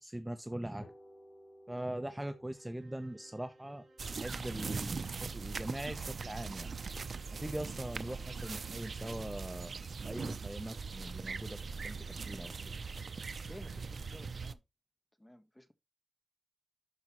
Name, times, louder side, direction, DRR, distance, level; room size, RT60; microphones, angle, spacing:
voice 1, 0.0-0.8 1.7-6.7 7.4-9.7 10.0-11.6 11.8-12.0 12.3-12.7, right 1 dB, 10° right, 0.9 m, -41 dB
sound 1, 0.8-8.5, equal, 85° left, 4.1 m, -60 dB
sound 2, 2.5-9.8, right 3 dB, 80° right, 5.4 m, -64 dB
sound 3, 4.0-14.5, right 4 dB, 65° right, 0.6 m, -41 dB
voice 2, 13.5-14.6 15.2-15.7, left 1 dB, 10° left, 1.4 m, -54 dB
12.0 x 5.2 x 3.1 m
wide cardioid pair, 95°, 0 cm